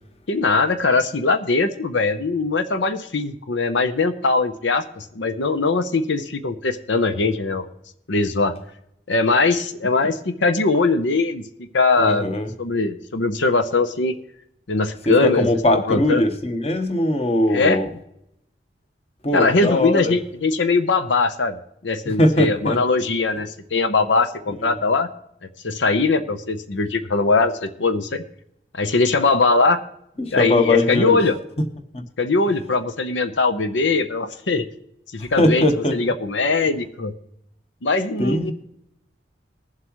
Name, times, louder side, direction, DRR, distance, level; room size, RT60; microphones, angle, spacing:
voice 1, 0.3-7.7 8.1-8.5 9.1-12.3 12.6-14.2 14.7-16.2 17.5-17.8 19.3-25.1 25.6-28.2 28.7-29.8 30.3-31.4 32.2-34.7 35.1-35.7 35.9-37.1 37.8-38.5, left 3 dB, 85° left, 0.8 m, -21 dB
voice 2, 12.0-12.5 15.1-17.9 19.2-20.1 22.0-22.8 24.6-24.8 30.2-31.2 35.4-36.0 38.2-38.5, left 1 dB, 35° left, 1.1 m, -20 dB
21.0 x 7.6 x 3.1 m
head